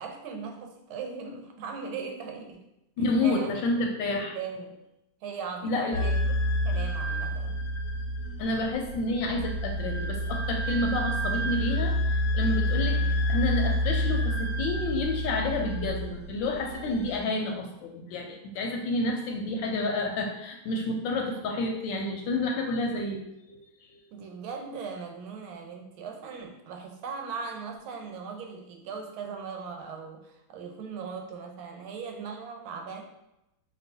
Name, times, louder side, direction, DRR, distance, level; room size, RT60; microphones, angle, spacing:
voice 1, 0.0-2.6 3.0-3.6 4.1-4.7 5.2-6.2 6.5-7.6 12.9-13.2 24.1-33.0, right 5 dB, 90° right, 3 dB, 1.5 m, -39 dB
voice 2, 3.0-4.4 5.6-6.1 8.4-23.2 23.5-23.6 23.9-24.0, left 2 dB, 75° left, 2 dB, 1.2 m, -29 dB
sound 1, 5.9-17.2, equal, 35° left, 0.9 m, -29 dB
5.4 x 3.0 x 2.7 m, 0.87 s
omnidirectional pair, 2.2 m